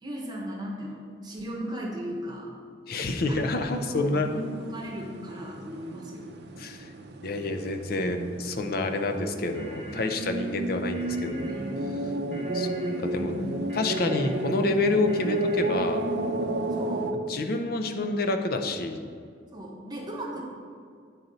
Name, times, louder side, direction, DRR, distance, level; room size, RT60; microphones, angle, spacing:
voice 1, 0.0-2.5 3.3-6.3 11.4-11.9 13.1-13.6 16.7-17.1 19.5-20.4, equal, 20° right, -2 dB, 1.0 m, -37 dB
voice 2, 2.9-4.3 6.6-6.9 7.2-11.5 12.5-12.7 13.0-13.3 13.7-16.0 17.1-19.0, left 2 dB, 55° left, 6 dB, 0.5 m, -28 dB
sound 1, 3.0-17.1, right 2 dB, 60° right, 0.5 m, -32 dB
sound 2, 9.5-16.2, right 1 dB, 10° left, 1.6 m, -47 dB
9.2 x 4.1 x 4.0 m, 2.2 s
head